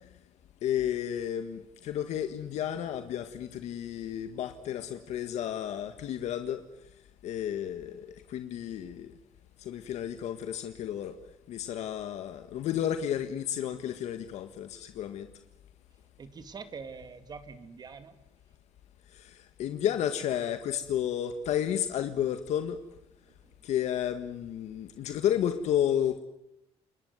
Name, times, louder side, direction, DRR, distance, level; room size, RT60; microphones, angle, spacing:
voice 1, 0.6-6.6 7.2-9.1 9.6-11.1 11.5-15.3 19.1-22.8 23.6-26.2, left 10 dB, 75° left, 8 dB, 1.7 m, -32 dB
voice 2, 16.2-18.2 23.4-23.5, right 5 dB, 35° right, 10 dB, 2.2 m, -44 dB
28.0 x 22.0 x 9.5 m, 0.85 s
cardioid pair, 135°, 12 cm